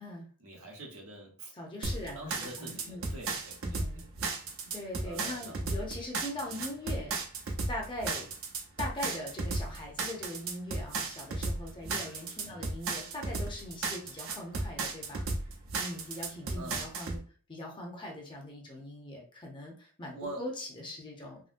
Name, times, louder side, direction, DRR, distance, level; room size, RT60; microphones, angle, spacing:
voice 1, 0.4-1.5 2.1-4.3 5.0-5.6 6.5-6.6 8.1-8.2 11.8-12.1 12.5-12.7 16.5-16.9 20.1-20.4, right 1 dB, 85° right, -1 dB, 1.0 m, -45 dB
voice 2, 1.5-3.2 3.6-4.0 4.7-7.3 7.7-8.3 8.8-15.3 15.8-17.2 17.5-21.4, left 1 dB, 20° left, -1 dB, 0.6 m, -41 dB
sound 1, 1.8-17.2, right 3 dB, 60° right, 0.6 m, -34 dB
3.6 x 2.0 x 2.5 m, 0.41 s
head